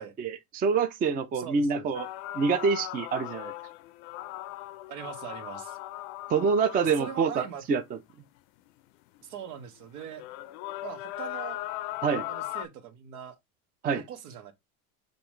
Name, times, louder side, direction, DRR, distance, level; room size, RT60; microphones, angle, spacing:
voice 1, 0.0-2.1 2.3-3.5 6.3-7.8 12.0-12.3 13.8-14.0, right 5 dB, 20° right, 0.4 m, -26 dB
voice 2, 1.3-1.9 4.9-5.8 6.8-7.6 9.2-10.3 10.8-11.6 12.3-13.3 13.9-14.5, right 8 dB, 85° right, 1.3 m, -41 dB
sound 1, 1.9-7.4 9.2-9.3 10.0-12.7, left 16 dB, 65° left, 0.5 m, -38 dB
6.8 x 2.6 x 3.0 m
supercardioid pair, 125°, 43 cm